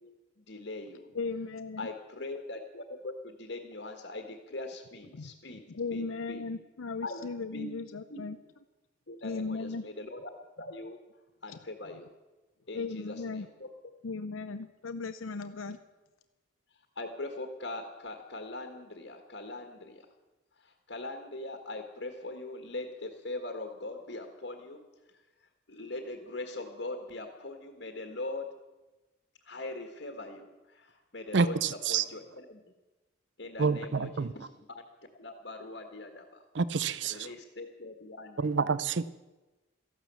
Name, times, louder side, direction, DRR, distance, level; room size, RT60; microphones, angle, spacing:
voice 1, 0.0-1.1 1.8-5.6 5.9-6.4 7.0-7.2 7.5-7.7 8.1-8.3 9.1-10.2 10.6-11.0 11.4-12.1 12.7-13.7 16.9-20.1 20.6-24.8 25.7-28.5 29.4-31.6 31.9-32.6 33.4-34.8 35.2-36.4 37.0-38.5, left 2 dB, 60° left, 1.7 m, -41 dB
voice 2, 1.1-1.9 5.1-8.4 9.2-9.8 11.5-11.6 12.7-13.5 14.0-15.8, left 4 dB, 90° left, 0.7 m, -37 dB
voice 3, 31.3-32.0 33.6-34.3 36.5-37.3 38.4-39.1, right 5 dB, 65° right, 0.6 m, -28 dB
14.5 x 12.0 x 8.2 m
head